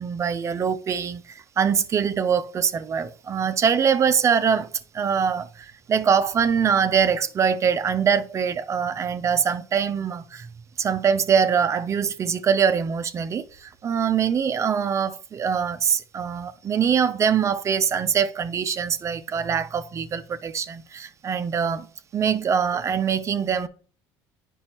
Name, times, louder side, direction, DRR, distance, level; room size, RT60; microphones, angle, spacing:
voice 1, 0.0-4.7 4.9-10.5 10.8-21.9 22.1-23.7, right 7 dB, 35° right, 0.6 m, -23 dB
8.8 x 5.4 x 2.9 m
supercardioid pair, 105°, 9 cm